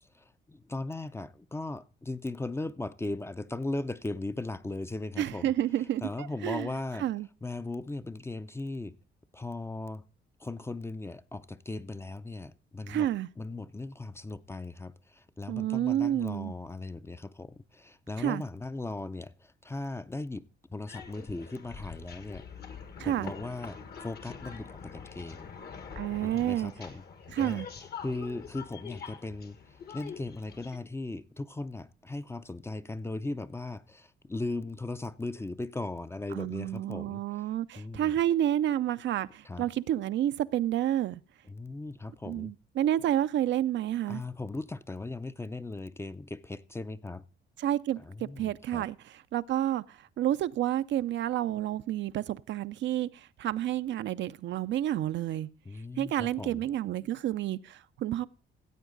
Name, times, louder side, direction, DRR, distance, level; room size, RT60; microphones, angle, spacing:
voice 1, 0.1-5.5 6.0-7.1 7.4-9.0 9.3-10.1 10.4-13.1 13.4-22.4 23.0-25.5 26.2-27.0 27.4-27.6 28.0-38.2 39.4-39.7 41.5-42.5 44.1-47.2 48.0-48.9 55.7-56.6, left 2 dB, 15° left, 0.5 m, -38 dB
voice 2, 5.2-6.7 7.0-7.3 12.9-13.3 15.5-16.5 18.2-18.4 23.0-23.3 26.0-26.7 27.3-27.7 36.3-41.2 42.3-44.2 47.6-55.5 56.0-58.3, right 12 dB, 65° right, 0.5 m, -30 dB
sound 1, 20.9-30.8, left 6 dB, 55° left, 1.4 m, -45 dB
14.5 x 8.0 x 3.9 m
cardioid pair, 90°, 20 cm